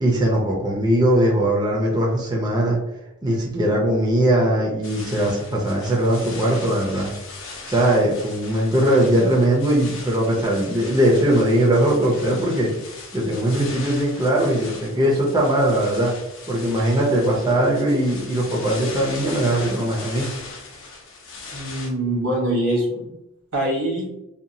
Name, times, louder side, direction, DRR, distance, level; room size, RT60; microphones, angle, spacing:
voice 1, 0.0-2.8 3.2-7.1 7.7-12.7 13.1-16.1 16.5-20.3, right 1 dB, 20° right, -3 dB, 0.5 m, -20 dB
sound 1, 4.8-21.9, left 3 dB, 60° left, 0.6 m, -39 dB
voice 2, 21.5-23.1 23.5-24.1, right 1 dB, 80° right, -3 dB, 1.1 m, -23 dB
2.8 x 2.2 x 2.6 m, 0.89 s
head